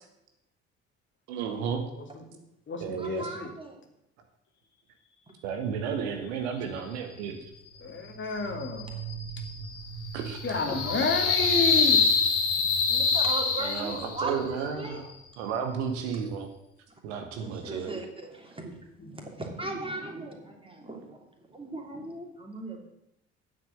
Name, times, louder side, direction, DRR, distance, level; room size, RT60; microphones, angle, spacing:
voice 1, 1.3-1.8 2.8-3.2 5.4-7.4 10.1-10.4 13.6-15.1 15.4-16.5 17.0-17.9, right 7 dB, 65° right, 5 dB, 1.4 m, -33 dB
voice 2, 2.0-2.4 2.7-3.5 7.8-9.0 10.4-12.0 19.0-19.3, left 3 dB, 35° left, 4 dB, 2.2 m, -31 dB
voice 3, 3.0-3.8 10.5-11.1 12.9-15.0 17.4-21.2 21.5-22.9, right 2 dB, 15° right, 1 dB, 3.1 m, -38 dB
sound 1, 8.3-14.3, left 4 dB, 70° left, 1.8 m, -26 dB
9.4 x 7.7 x 8.0 m, 0.83 s
figure-of-eight pair, 50°, 35 cm